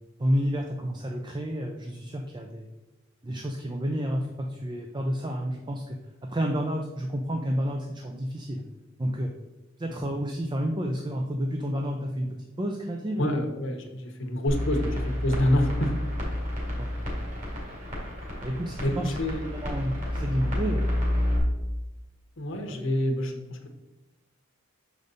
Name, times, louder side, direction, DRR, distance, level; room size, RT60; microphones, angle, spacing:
voice 1, 0.2-2.7 3.2-8.6 9.0-9.3 9.8-13.4 16.8-17.4 18.4-19.1 19.5-21.0 22.5-22.8, equal, 20° right, 2 dB, 0.5 m, -30 dB
voice 2, 13.2-15.9 18.5-19.5 22.4-23.7, left 1 dB, 65° left, 3 dB, 1.0 m, -27 dB
sound 1, 14.5-21.4, left 1 dB, 35° right, 2.4 m, -30 dB
6.4 x 5.1 x 4.0 m, 1.1 s
head